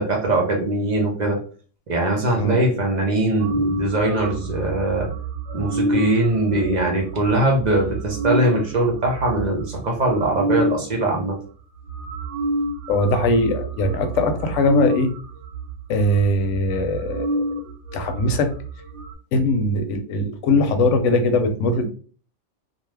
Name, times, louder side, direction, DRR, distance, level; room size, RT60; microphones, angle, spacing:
voice 1, 0.0-1.4 1.9-5.1 5.5-11.4, right 2 dB, 45° right, 0 dB, 0.6 m, -21 dB
sound 1, 3.4-10.8 11.5-11.6 11.8-19.1, right 1 dB, 70° right, 0.9 m, -28 dB
voice 2, 12.9-15.1 15.9-17.4 17.9-18.5 19.3-21.9, left 2 dB, 75° left, 7 dB, 0.9 m, -20 dB
2.6 x 2.2 x 3.2 m, 0.40 s
omnidirectional pair, 1.3 m